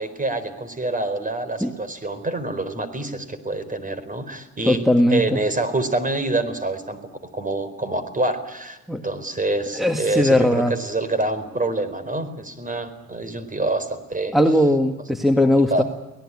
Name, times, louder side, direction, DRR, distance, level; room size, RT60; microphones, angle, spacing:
voice 1, 0.0-4.8 5.1-7.0 7.3-8.8 9.0-14.4 15.7-15.8, right 2 dB, 25° right, 13 dB, 4.4 m, -26 dB
voice 2, 4.7-5.4 8.9-9.0 9.7-10.7 14.3-15.8, left 1 dB, ahead, 6 dB, 1.9 m, -18 dB
24.5 x 18.5 x 9.9 m, 1.1 s
supercardioid pair, 75°, 35 cm